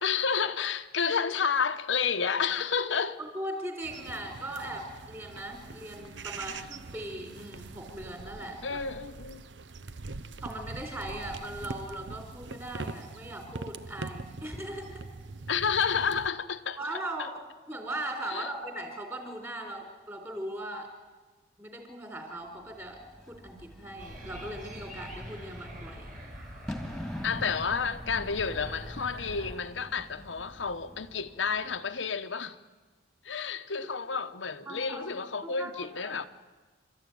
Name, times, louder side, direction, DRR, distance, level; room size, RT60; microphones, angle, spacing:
voice 1, 0.0-3.2 8.6-9.4 15.5-16.8 18.3-18.5 27.2-32.6 33.2-36.3, left 6 dB, 85° left, 1.0 m, -30 dB
voice 2, 3.2-8.8 10.4-15.1 16.8-17.3 17.7-20.9 21.6-26.2 34.7-35.0 35.4-36.1, right 1 dB, 15° right, 3.9 m, -39 dB
sound 1, 3.8-16.3, right 3 dB, 70° right, 0.8 m, -43 dB
Bird / Fireworks, 22.7-31.9, left 1 dB, ahead, 2.1 m, -45 dB
sound 2, 24.0-29.6, equal, 45° right, 6.8 m, -44 dB
29.5 x 13.5 x 9.3 m
head